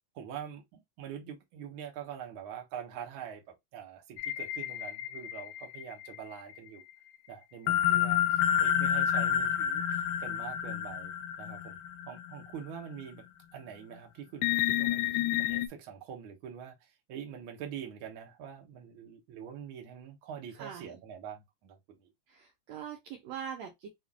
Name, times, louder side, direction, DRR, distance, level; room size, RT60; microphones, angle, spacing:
voice 1, 0.1-3.4 3.7-6.8 7.3-11.1 11.4-11.8 12.1-13.2 13.5-22.1, right 8 dB, 75° right, 1.1 m, -44 dB
sound 1, 4.2-6.2 7.7-12.5 13.0-13.1 14.4-15.7, left 10 dB, 80° left, 2.0 m, -29 dB
voice 2, 20.6-20.9 22.3-23.9, right 8 dB, 90° right, 1.5 m, -42 dB
5.6 x 2.5 x 2.3 m
omnidirectional pair, 4.0 m